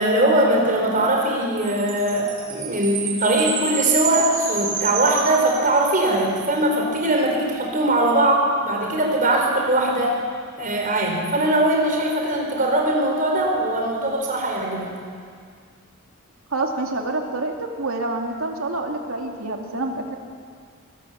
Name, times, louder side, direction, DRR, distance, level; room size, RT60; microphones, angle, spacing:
voice 1, 0.0-10.2 10.6-14.9, right 1 dB, 40° right, 0 dB, 4.7 m, -21 dB
Chime, 1.6-6.1, right 6 dB, 60° right, 5.1 m, -29 dB
voice 2, 16.5-20.2, right 2 dB, 80° right, 2 dB, 2.6 m, -27 dB
24.0 x 18.0 x 7.6 m, 2.1 s
head